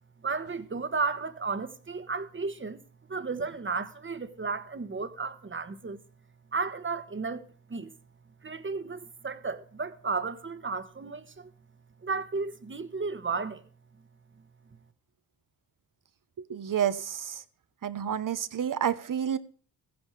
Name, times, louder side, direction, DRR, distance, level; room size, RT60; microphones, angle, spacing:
voice 1, 0.2-2.8 3.1-6.0 6.5-7.9 8.4-11.5 12.0-13.6, right 4 dB, 30° right, 1.4 m, -33 dB
voice 2, 16.5-17.3 17.8-19.4, right 9 dB, 55° right, 1.0 m, -29 dB
14.5 x 10.5 x 4.8 m
cardioid pair, 70°, 39 cm